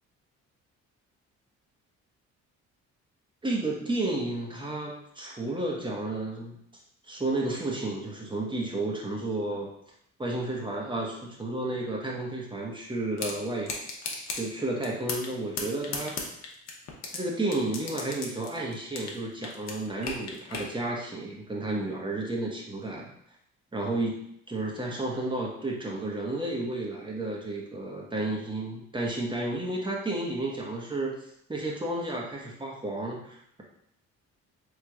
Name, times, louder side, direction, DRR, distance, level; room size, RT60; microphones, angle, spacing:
voice 1, 3.4-6.6 7.1-9.7 10.2-13.7 14.3-16.2 17.1-23.1 23.7-24.2 24.5-31.2 31.5-33.6, right 2 dB, 15° right, -2 dB, 0.9 m, -32 dB
sound 1, 13.2-13.3 13.7-14.4 14.8-15.3 15.6-17.2 17.5-19.2 19.4-20.7, left 4 dB, 60° left, 0.8 m, -34 dB
3.7 x 3.2 x 2.3 m, 0.73 s
cardioid pair, 90°, 30 cm